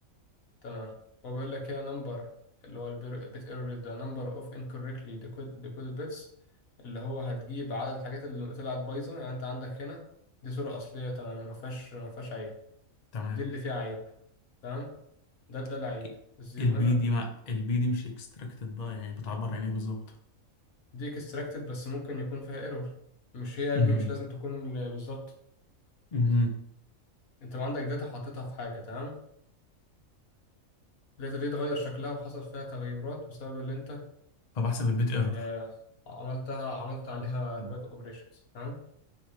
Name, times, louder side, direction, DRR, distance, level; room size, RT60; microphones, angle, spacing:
voice 1, 1.2-2.3 2.6-6.3 6.8-10.0 10.4-12.5 13.3-14.0 14.6-14.9 15.5-16.1 16.4-17.0 20.9-22.9 23.3-25.2 27.4-29.2 31.2-34.0 35.3-35.7 36.1-38.2 38.5-38.8, left 2 dB, 90° left, 0 dB, 1.7 m, -36 dB
voice 2, 16.6-20.0 23.7-24.1 26.1-26.5 34.5-35.4, left 2 dB, 40° left, 3 dB, 0.8 m, -28 dB
9.3 x 3.4 x 3.3 m, 0.73 s
omnidirectional pair, 1.4 m